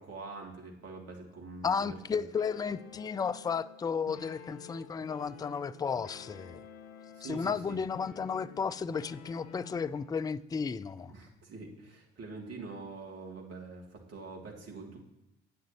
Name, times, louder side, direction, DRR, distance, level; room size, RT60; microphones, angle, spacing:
voice 1, 0.0-2.2 7.1-7.8 11.1-15.0, right 3 dB, 50° right, 0 dB, 2.6 m, -45 dB
voice 2, 1.6-6.6 7.2-11.1, left 6 dB, 10° left, 15 dB, 0.4 m, -33 dB
sound 1, 2.4-10.1, left 7 dB, 80° left, 0.7 m, -50 dB
10.0 x 8.4 x 2.9 m, 0.93 s
hypercardioid pair, 50°, 32 cm